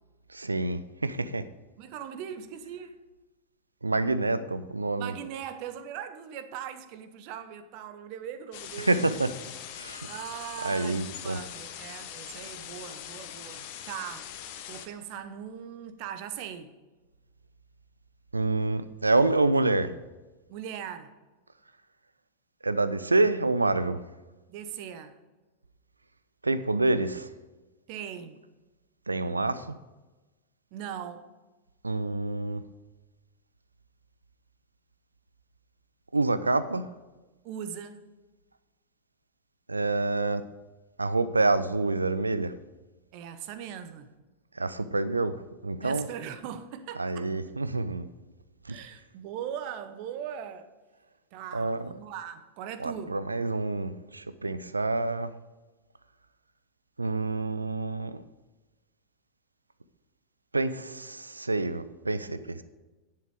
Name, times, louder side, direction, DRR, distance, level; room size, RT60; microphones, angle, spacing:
voice 1, 0.3-1.4 3.8-5.1 8.8-9.3 9.7-10.1 10.6-11.4 18.3-19.9 22.6-24.0 26.4-27.3 29.1-29.8 31.8-32.6 36.1-36.8 39.7-40.4 41.0-42.5 44.5-46.1 46.9-48.1 48.7-48.8 51.5-51.9 52.8-55.3 57.0-58.2 60.5-62.6, right 2 dB, 80° right, 0.5 m, -27 dB
voice 2, 1.8-3.0 4.9-9.1 10.0-14.3 14.7-16.7 20.5-21.1 24.5-25.2 27.9-28.4 30.7-31.3 37.4-38.0 43.1-44.1 45.8-47.3 48.7-50.7 51.3-53.2, right 9 dB, 45° right, 0.9 m, -40 dB
sound 1, 8.5-14.9, left 10 dB, 45° left, 1.0 m, -42 dB
11.0 x 7.7 x 4.8 m
figure-of-eight pair, 90°, 0 cm